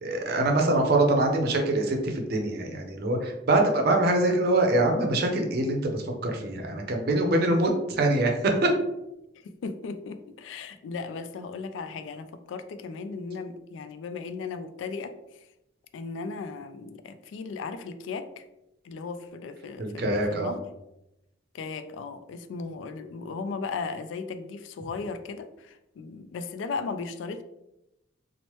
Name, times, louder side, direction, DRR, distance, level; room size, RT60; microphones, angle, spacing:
voice 1, 0.0-8.7 19.8-20.5, right 2 dB, 55° right, 3 dB, 0.5 m, -24 dB
voice 2, 9.4-15.1 15.9-18.4 18.8-20.6 21.5-27.4, left 4 dB, 90° left, 11 dB, 0.3 m, -36 dB
3.0 x 2.0 x 3.0 m, 0.89 s
head